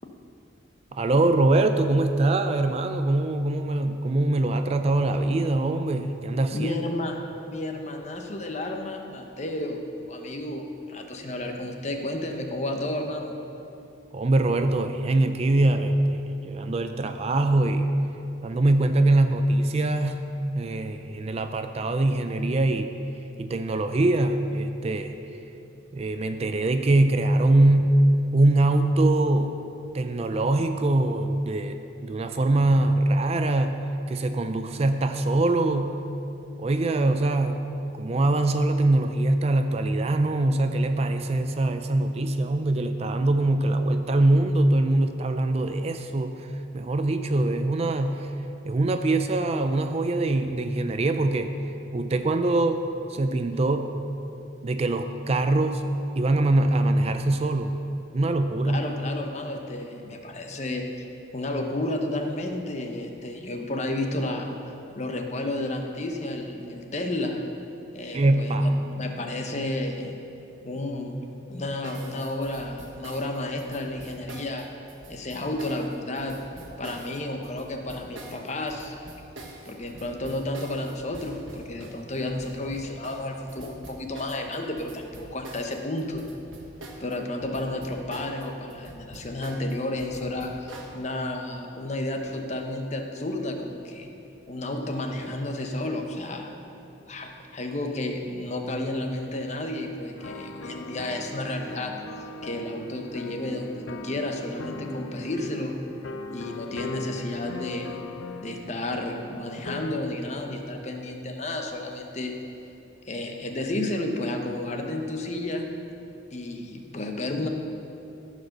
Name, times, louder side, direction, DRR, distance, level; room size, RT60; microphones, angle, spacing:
voice 1, 0.9-6.8 14.1-17.9 18.4-20.3 20.5-22.9 23.4-25.2 25.9-28.0 28.3-29.6 29.9-33.8 34.1-36.0 36.6-46.5 46.7-48.3 48.7-51.5 51.9-52.8 53.1-53.9 54.6-55.9 56.2-57.8 58.1-58.8 68.1-68.8, right 2 dB, 30° right, 8 dB, 0.4 m, -23 dB
voice 2, 6.5-7.2 7.5-13.3 58.6-61.1 61.3-67.4 67.9-68.7 69.0-70.2 70.6-71.1 71.5-74.7 75.1-76.4 76.8-79.0 79.7-86.2 87.0-94.1 94.5-96.5 97.1-105.8 106.3-108.0 108.4-112.3 113.0-115.7 116.3-117.5, left 1 dB, 35° left, 3 dB, 0.8 m, -32 dB
sound 1, 71.8-87.2 87.4-90.9, right 2 dB, 85° right, 1.5 m, -45 dB
sound 2, 100.2-110.0, left 2 dB, 85° left, 0.6 m, -39 dB
14.5 x 5.0 x 6.5 m, 2.8 s
head